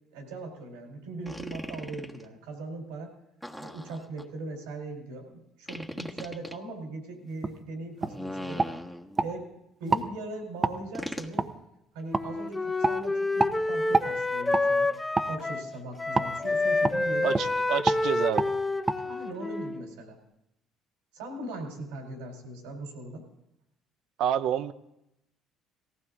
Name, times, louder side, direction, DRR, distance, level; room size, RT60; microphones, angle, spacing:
voice 1, 0.1-3.1 3.6-8.7 9.2-9.5 9.8-11.5 11.9-14.9 15.3-17.3 19.0-20.2 21.1-23.3, right 2 dB, 85° right, 3 dB, 3.6 m, -40 dB
sound 1, 1.3-2.2 3.4-4.2 5.7-6.6 8.0-9.3 10.9-11.4, equal, ahead, 1.4 m, -39 dB
sound 2, 7.4-7.6 8.0-8.2 8.6-9.3 9.9-10.1 10.6-10.8 11.4-11.5 12.1-12.3 12.8-13.0 13.4-13.6 13.9-14.1 14.5-14.7 15.1-15.3 16.1-16.3 16.8-17.0 17.3-17.5 17.8-18.0 18.4-18.5 18.9-19.0, right 3 dB, 30° right, 0.9 m, -26 dB
Wind instrument woodwind instrument, 12.1-15.7 16.0-19.9, left 2 dB, 20° left, 0.8 m, -28 dB
voice 2, 17.2-18.5 24.2-24.7, right 10 dB, 70° right, 13 dB, 0.7 m, -28 dB
18.0 x 15.0 x 3.6 m, 0.85 s
hypercardioid pair, 65°, 0 cm